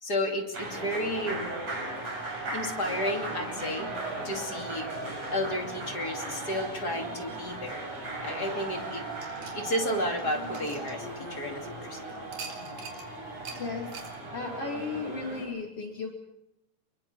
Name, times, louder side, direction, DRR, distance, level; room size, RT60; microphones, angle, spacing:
voice 1, 0.0-1.5 2.5-3.9 4.2-4.9 5.3-7.9 8.2-9.1 9.5-12.2, left 1 dB, 30° left, 2 dB, 2.9 m, -32 dB
sound 1, 0.5-15.4, right 2 dB, 55° right, 7.4 m, -37 dB
sound 2, 9.2-11.6 12.3-13.1 13.4-13.6 13.9-14.1, right 5 dB, 75° right, 4.2 m, -44 dB
voice 2, 13.6-13.9 14.3-16.1, left 4 dB, 45° left, 1 dB, 3.6 m, -35 dB
25.5 x 22.5 x 5.7 m, 0.87 s
omnidirectional pair, 3.6 m